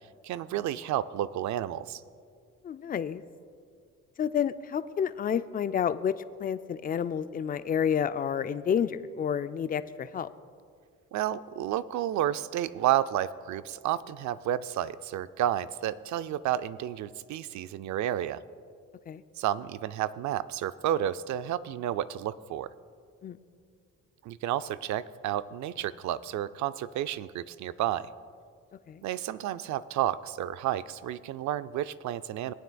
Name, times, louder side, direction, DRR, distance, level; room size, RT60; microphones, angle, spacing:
voice 1, 0.2-2.0 11.1-18.4 19.4-22.7 24.2-28.1 29.0-32.5, right 12 dB, 70° right, 15 dB, 0.4 m, -31 dB
voice 2, 2.6-3.2 4.2-10.3 19.1-19.2 23.2-23.4 28.9-29.0, left 8 dB, 30° left, 13 dB, 0.3 m, -30 dB
19.5 x 9.2 x 2.3 m, 2.2 s
cardioid pair, 90°, 30 cm